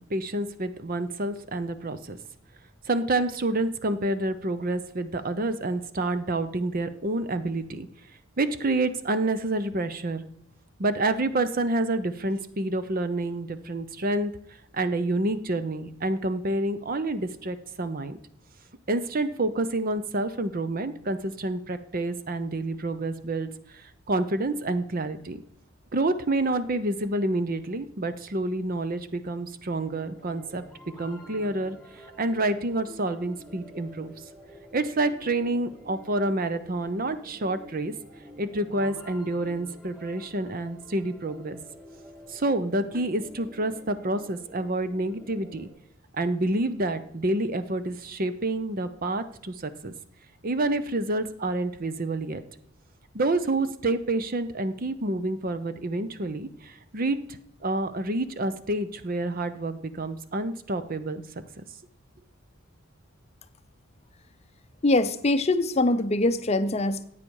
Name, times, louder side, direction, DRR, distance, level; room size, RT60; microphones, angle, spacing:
voice 1, 0.0-2.2 2.9-7.9 8.4-10.2 10.8-14.3 14.7-18.2 18.9-25.4 25.9-30.6 31.0-31.8 32.2-34.1 34.7-37.9 38.4-41.6 42.3-45.7 46.2-49.9 50.4-52.4 53.1-57.2 57.6-61.2, right 2 dB, 40° right, 11 dB, 0.8 m, -28 dB
sound 1, 29.7-45.7, left 1 dB, ahead, 3.4 m, -48 dB
voice 2, 64.8-67.1, left 2 dB, 30° left, 11 dB, 0.6 m, -23 dB
15.0 x 8.6 x 4.7 m, 0.75 s
head